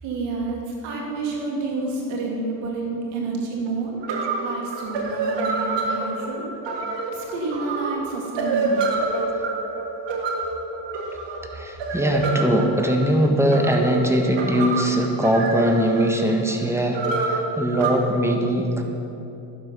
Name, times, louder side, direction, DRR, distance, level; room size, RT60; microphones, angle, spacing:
voice 1, 0.0-4.0 4.4-6.4 7.1-9.0, right 3 dB, 90° right, -2 dB, 2.4 m, -29 dB
sound 1, 3.7-3.8 4.0-17.9, right 3 dB, 70° right, 1.8 m, -27 dB
voice 2, 11.5-18.8, equal, 5° right, 2 dB, 1.5 m, -21 dB
11.0 x 8.1 x 5.8 m, 2.9 s
supercardioid pair, 70°, 45 cm